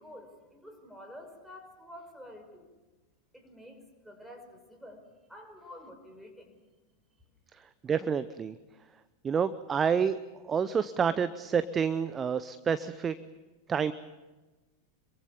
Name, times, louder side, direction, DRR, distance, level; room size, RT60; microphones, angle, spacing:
voice 1, 0.0-2.7 3.3-6.6, left 1 dB, ahead, 3 dB, 5.4 m, -49 dB
voice 2, 7.8-8.6 9.2-10.2 10.4-13.1 13.7-13.9, right 7 dB, 20° right, 14 dB, 0.8 m, -28 dB
26.5 x 23.0 x 7.1 m, 1.2 s
figure-of-eight pair, 90°, 0 cm